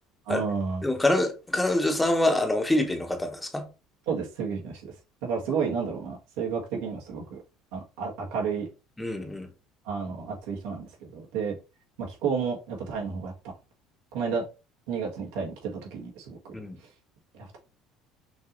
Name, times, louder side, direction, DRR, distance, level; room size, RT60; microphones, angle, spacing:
voice 1, 0.3-0.8 4.1-4.8 5.2-7.4 7.7-8.7 9.9-11.6 12.0-13.5 14.1-14.4 14.9-16.5 16.8-16.9, right 6 dB, 90° right, 1.7 m, -31 dB
voice 2, 0.8-3.7 9.0-9.5 16.5-16.8, left 1 dB, 10° left, 0.8 m, -25 dB
6.0 x 2.7 x 3.1 m
cardioid pair, 150°, 0 cm